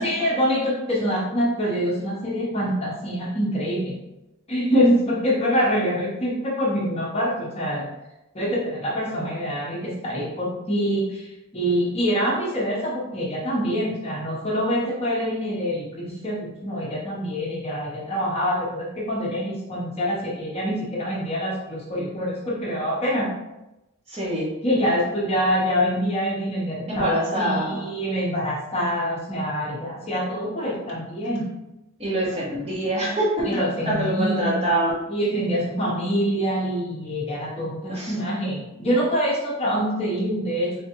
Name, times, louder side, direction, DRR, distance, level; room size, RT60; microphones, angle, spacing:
voice 1, 0.0-4.0 4.5-7.9 8.3-23.3 24.6-31.5 33.4-34.6 35.1-40.8, equal, 25° left, -4 dB, 0.7 m, -25 dB
voice 2, 24.1-24.5 26.9-27.8 32.0-35.0 37.9-38.1, right 1 dB, 25° right, -6 dB, 1.2 m, -25 dB
3.5 x 3.5 x 2.9 m, 0.94 s
head